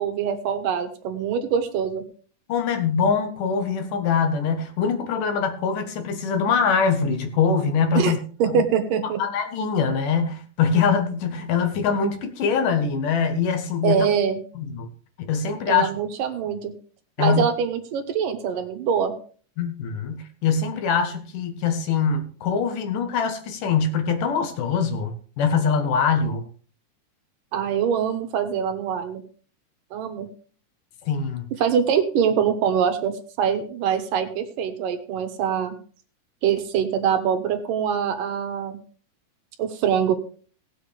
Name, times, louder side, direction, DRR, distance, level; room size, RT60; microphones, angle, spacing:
voice 1, 0.0-2.0 7.9-8.1 8.4-9.2 13.8-14.4 15.7-16.7 17.2-19.1 27.5-29.2 29.9-30.3 31.6-35.7 36.4-38.8 39.6-40.1, right 7 dB, 85° right, 8 dB, 2.9 m, -24 dB
voice 2, 2.5-8.2 8.5-8.6 9.2-14.1 14.6-14.9 15.2-15.9 17.2-17.4 19.6-26.4 31.1-31.5, left 6 dB, 80° left, 7 dB, 3.0 m, -23 dB
18.0 x 7.6 x 3.4 m, 0.42 s
omnidirectional pair, 3.7 m